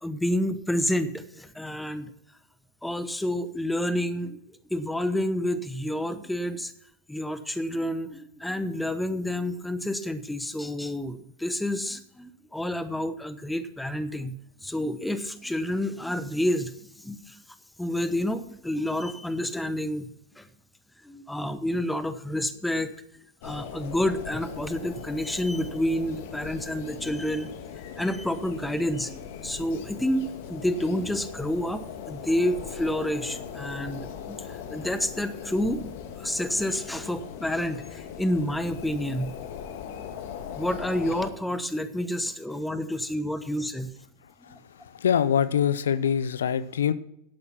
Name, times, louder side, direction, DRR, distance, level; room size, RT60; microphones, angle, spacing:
voice 1, 0.0-2.1 2.8-4.4 4.7-6.7 7.1-14.3 14.6-17.4 17.8-20.1 20.4-20.5 21.0-22.9 23.4-27.5 28.0-35.8 36.2-39.3 40.0-40.1 40.6-43.9 44.5-44.6, left 1 dB, 5° left, 13 dB, 1.1 m, -29 dB
sound 1, 23.4-41.3, left 8 dB, 65° left, 1.7 m, -40 dB
voice 2, 44.2-46.9, left 8 dB, 80° left, 15 dB, 0.6 m, -25 dB
11.5 x 8.6 x 5.9 m, 0.75 s
hypercardioid pair, 100°, 0 cm